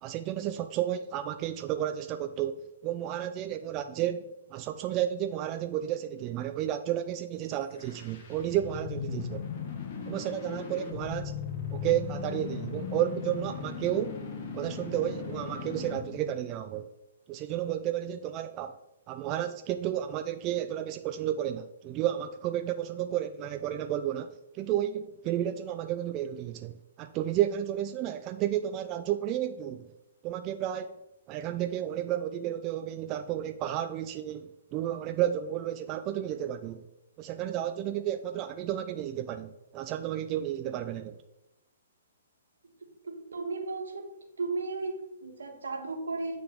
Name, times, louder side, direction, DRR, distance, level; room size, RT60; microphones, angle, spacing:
voice 1, 0.0-9.5 10.1-11.3 11.7-14.2 14.5-16.9 17.3-18.8 19.1-29.9 30.2-31.0 31.3-36.8 37.2-41.1, right 11 dB, 30° right, 0.4 m, -32 dB
sound 1, 7.6-16.2, left 6 dB, 45° left, 1.4 m, -38 dB
voice 2, 42.8-44.1 44.4-46.4, right 3 dB, 80° right, 1.6 m, -35 dB
8.8 x 3.8 x 5.0 m
hypercardioid pair, 130°, 0 cm